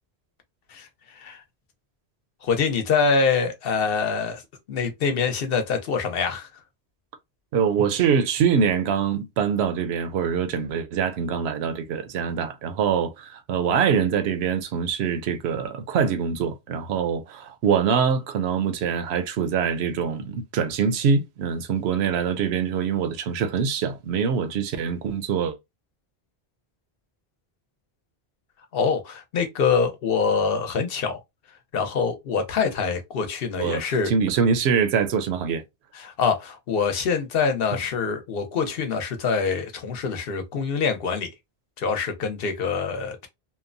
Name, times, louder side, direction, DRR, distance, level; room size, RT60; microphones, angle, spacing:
voice 1, 0.7-1.4 2.4-4.4 4.7-6.6 28.7-31.2 31.7-34.1 35.9-41.3 41.8-43.3, left 5 dB, 65° left, 0.9 m, -25 dB
voice 2, 7.5-25.6 33.6-33.8 34.1-35.6, right 6 dB, 80° right, 0.8 m, -24 dB
2.8 x 2.0 x 2.5 m
omnidirectional pair, 1.1 m